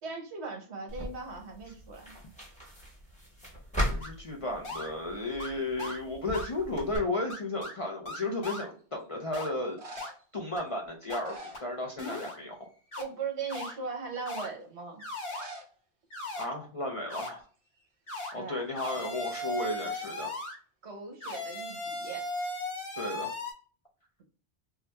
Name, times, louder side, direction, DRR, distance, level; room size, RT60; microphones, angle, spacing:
voice 1, 0.0-2.1 13.0-15.0 18.3-18.7 20.8-22.3, right 4 dB, 75° right, 3 dB, 1.2 m, -39 dB
sound 1, 0.9-7.0, equal, 5° left, 1.2 m, -38 dB
voice 2, 3.8-9.8 10.3-12.6 16.4-17.4 18.3-20.3 22.9-23.3, left 2 dB, 40° left, 0 dB, 0.5 m, -34 dB
sound 2, 4.0-4.1 4.6-4.9 5.4-5.5 5.8-6.0 6.3-6.5 6.9-7.0 7.3-7.7 8.1-8.7 9.3-9.5 10.0-10.1 10.6-10.7 11.1-11.2 11.5-11.6 12.0-12.4 12.9-13.0 13.5-13.7 14.2-14.5 15.0-15.5 16.1-16.5 17.1-17.3 18.1-18.3 18.7-20.6 21.2-23.5, left 2 dB, 65° left, 1.2 m, -37 dB
sound 3, 8.1-8.6 9.6-10.4 11.0-12.3 12.5-12.9 13.5-13.6 15.2-15.7 16.0-16.1 16.3-16.4 17.2-17.4 17.7-18.9 22.8-23.5, right 1 dB, 45° right, 0.5 m, -48 dB
2.8 x 2.3 x 3.2 m, 0.41 s
omnidirectional pair, 1.1 m